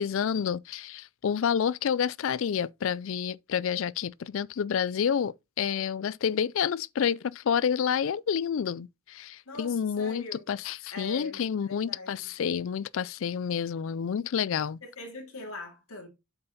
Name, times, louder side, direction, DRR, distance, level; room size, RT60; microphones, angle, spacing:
voice 1, 0.0-14.8, left 7 dB, 60° left, 0.4 m, -29 dB
voice 2, 9.4-10.5 10.9-12.3 14.8-16.1, left 2 dB, 80° left, 2.9 m, -42 dB
8.0 x 5.6 x 4.0 m
head